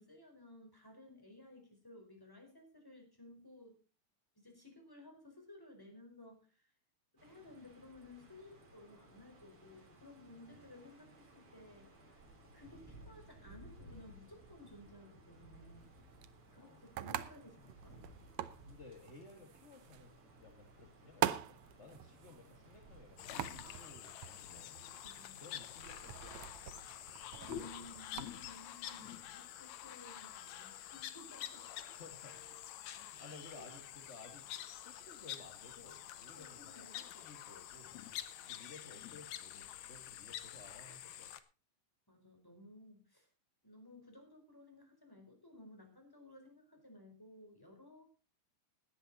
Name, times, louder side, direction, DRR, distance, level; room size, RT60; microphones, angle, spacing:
voice 1, 0.0-3.8 4.4-6.7 7.2-12.2 12.5-15.9 16.5-18.0 23.2-23.7 24.4-24.5 25.0-25.4 27.3-31.7 33.1-33.7 34.2-34.3 36.4-37.0 42.1-43.3 43.6-48.1, left 1 dB, 5° left, 3 dB, 4.1 m, -57 dB
sound 1, 7.2-23.5, right 1 dB, 40° right, 4.5 m, -60 dB
sound 2, 15.8-28.3, right 12 dB, 75° right, 1.5 m, -44 dB
voice 2, 18.7-20.1 20.4-24.8 25.4-26.5 31.9-32.4 32.9-34.5 34.8-37.9 38.4-41.3, left 3 dB, 40° left, 4 dB, 1.0 m, -57 dB
sound 3, 23.2-41.4, left 11 dB, 65° left, 2.0 m, -48 dB
17.5 x 10.5 x 4.1 m, 0.32 s
omnidirectional pair, 3.9 m